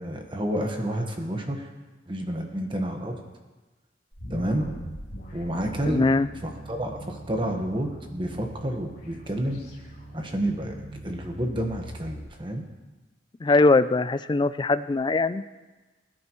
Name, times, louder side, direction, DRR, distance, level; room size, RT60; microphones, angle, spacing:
voice 1, 0.0-1.7 2.1-3.2 4.3-4.7 5.3-6.0 6.7-9.6 10.1-10.7 11.0-12.6, right 1 dB, 25° right, 3 dB, 1.4 m, -29 dB
sound 1, 4.1-12.3, right 1 dB, 55° left, 3.3 m, -41 dB
voice 2, 5.9-6.3 13.4-15.4, left 3 dB, 25° left, 14 dB, 0.3 m, -21 dB
21.0 x 10.5 x 3.1 m, 1.2 s
head